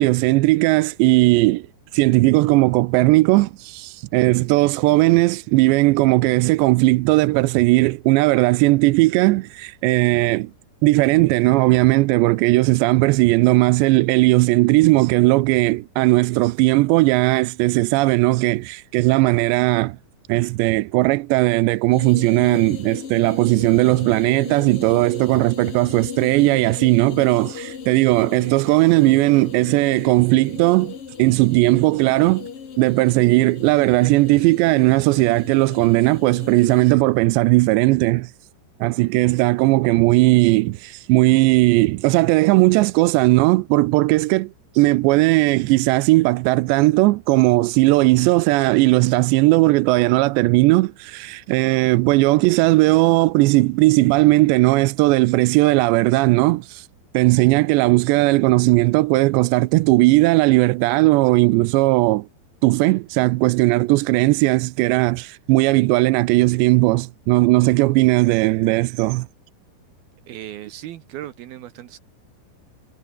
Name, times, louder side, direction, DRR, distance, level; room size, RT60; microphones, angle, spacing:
voice 1, 0.0-1.7 1.9-10.5 10.8-20.0 20.3-32.5 32.8-38.3 38.8-56.9 57.1-62.3 62.6-69.3, right 21 dB, 85° right, 2.9 m, -17 dB
sound 1, 21.9-36.9, left 6 dB, 40° left, 2.5 m, -37 dB
voice 2, 70.3-72.0, right 13 dB, 70° right, 2.6 m, -36 dB
omnidirectional pair, 5.1 m